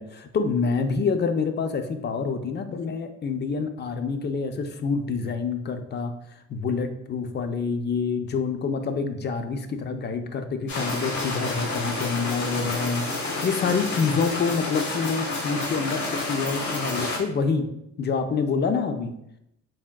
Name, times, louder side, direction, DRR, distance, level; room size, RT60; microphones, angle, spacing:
voice 1, 0.0-6.1 6.5-17.7 18.0-19.1, left 5 dB, 35° left, 7 dB, 0.4 m, -27 dB
sound 1, 10.7-17.2, left 2 dB, 70° left, 1.0 m, -29 dB
3.5 x 3.4 x 2.2 m, 0.80 s
cardioid pair, 90°, 30 cm